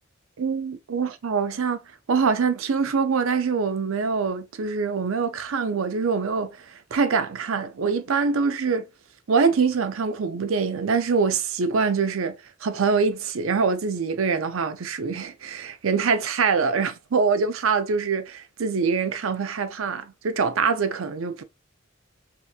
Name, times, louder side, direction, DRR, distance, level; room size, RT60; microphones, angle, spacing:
voice 1, 0.4-1.8 2.1-8.9 9.3-21.4, right 5 dB, 85° right, 0.5 m, -24 dB
3.3 x 2.9 x 2.4 m
head